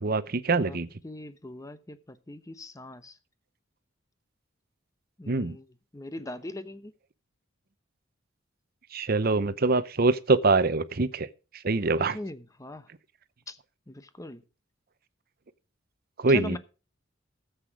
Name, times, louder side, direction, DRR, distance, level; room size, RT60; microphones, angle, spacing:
voice 1, 0.0-0.9 5.3-5.6 8.9-11.3 11.6-12.2 16.2-16.6, right 3 dB, 50° right, 0.8 m, -24 dB
voice 2, 1.0-3.2 5.2-5.6 5.9-6.9 12.0-12.9 13.5-13.6 13.9-14.4 16.3-16.6, left 1 dB, 15° left, 0.8 m, -40 dB
14.0 x 8.1 x 4.8 m
head